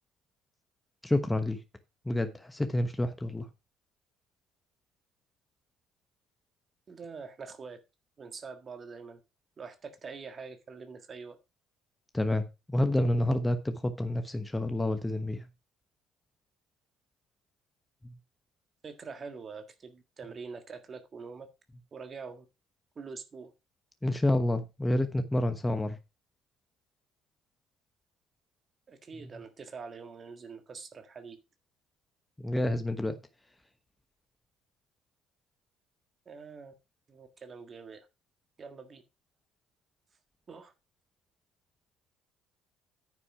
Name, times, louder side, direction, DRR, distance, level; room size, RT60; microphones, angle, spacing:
voice 1, 1.0-1.6 2.0-3.5 12.1-15.4 24.0-26.0 32.4-33.2, left 1 dB, 10° left, 1.1 m, -28 dB
voice 2, 6.9-7.8 8.2-9.2 9.6-11.4 18.8-21.5 21.9-22.5 22.9-23.5 28.9-31.4 36.2-36.7 37.1-38.1 38.6-39.0 40.5-40.7, right 5 dB, 40° right, 1.7 m, -44 dB
9.5 x 6.1 x 4.9 m
hypercardioid pair, 70°, 0 cm